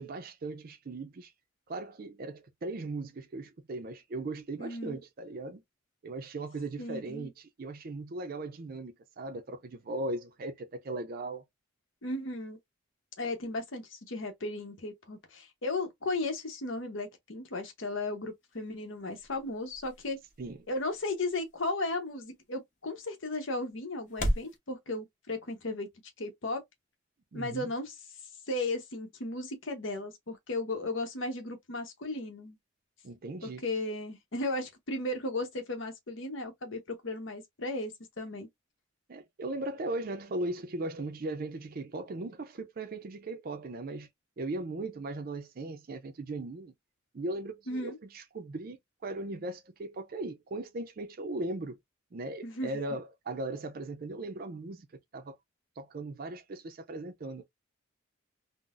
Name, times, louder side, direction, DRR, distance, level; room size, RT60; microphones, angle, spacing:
voice 1, 0.0-1.3 1.7-5.6 6.0-11.4 20.4-20.6 27.3-27.7 33.0-33.6 39.1-44.1 44.4-46.7 47.1-48.8 49.0-51.8 52.1-54.9 55.1-55.4 55.8-57.4, right 2 dB, 45° right, 0.4 m, -38 dB
voice 2, 4.6-5.0 6.8-7.3 12.0-12.6 13.2-20.2 20.7-25.9 26.2-26.6 27.3-28.0 28.5-32.6 33.4-38.5 47.7-48.0 52.4-52.7, left 2 dB, 70° left, 0.9 m, -35 dB
sound 1, 18.3-24.6, equal, 40° left, 0.7 m, -39 dB
3.8 x 2.1 x 2.5 m
head